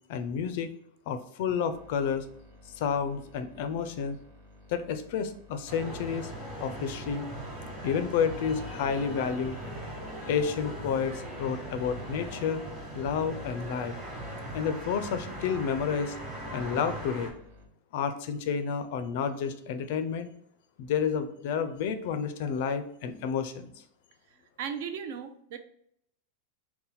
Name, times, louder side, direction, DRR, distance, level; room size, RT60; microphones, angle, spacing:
voice 1, 0.1-0.7 1.1-2.3 2.8-4.2 4.7-6.3 6.6-7.2 7.8-9.6 10.3-12.6 12.9-13.9 14.5-16.1 16.5-17.3 17.9-20.3 20.8-23.7, left 7 dB, 50° left, 10 dB, 0.4 m, -30 dB
sound 1, 1.7-17.7, left 1 dB, 85° right, 1.2 m, -54 dB
sound 2, 5.7-17.3, right 1 dB, 10° right, 1.2 m, -40 dB
voice 2, 24.3-25.6, right 7 dB, 50° right, 8 dB, 0.4 m, -37 dB
4.1 x 2.2 x 4.0 m, 0.70 s
supercardioid pair, 170°, 0 cm